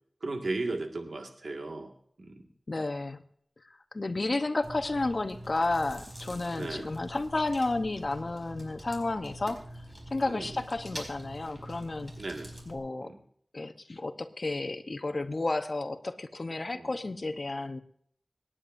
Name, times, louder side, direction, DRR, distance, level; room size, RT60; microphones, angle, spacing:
voice 1, 0.2-1.9 2.2-2.5 6.6-6.9 10.3-10.6 12.2-12.6 13.0-13.2 16.7-17.0, right 2 dB, 90° right, 3 dB, 1.9 m, -36 dB
voice 2, 2.7-3.2 3.9-9.6 10.1-12.1 12.7-13.1 13.5-17.8, left 2 dB, 60° left, 7 dB, 1.0 m, -32 dB
Chewing mastication, 4.6-12.8, equal, 20° right, 4.6 m, -45 dB
25.5 x 9.9 x 2.7 m, 0.64 s
wide cardioid pair, 50°, 0 cm